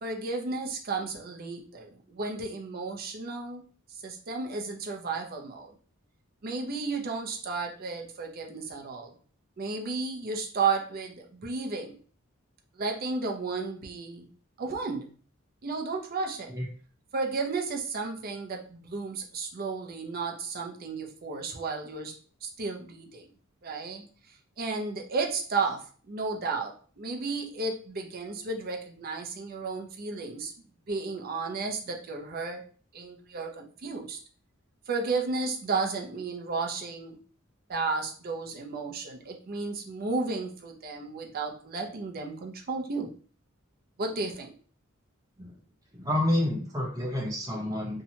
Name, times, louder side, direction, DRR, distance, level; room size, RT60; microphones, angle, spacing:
voice 1, 0.0-3.6 4.0-5.7 6.4-9.1 9.6-12.0 12.8-14.3 14.6-15.1 15.6-16.5 17.1-22.1 22.4-23.3 23.6-24.0 24.6-30.5 30.9-32.7 32.9-34.2 34.9-37.2 37.7-43.1 44.0-44.5, right 4 dB, 45° right, 2 dB, 0.5 m, -33 dB
voice 2, 45.9-48.0, left 1 dB, 20° right, -3 dB, 0.8 m, -29 dB
2.7 x 2.2 x 2.8 m, 0.42 s
head